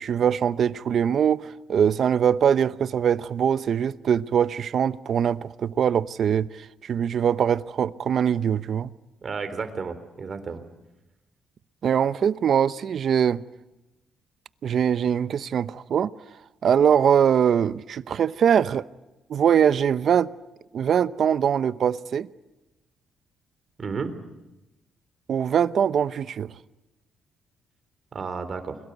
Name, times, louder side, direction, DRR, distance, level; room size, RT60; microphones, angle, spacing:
voice 1, 0.0-8.9 11.8-13.4 14.6-16.1 16.6-18.8 19.3-20.3 20.7-22.3 25.3-26.5, right 8 dB, 60° right, 0.9 m, -22 dB
voice 2, 9.2-10.6 23.8-24.1 28.1-28.8, right 5 dB, 45° right, 3.7 m, -32 dB
29.5 x 22.5 x 8.2 m
cardioid pair, 90°, 0 cm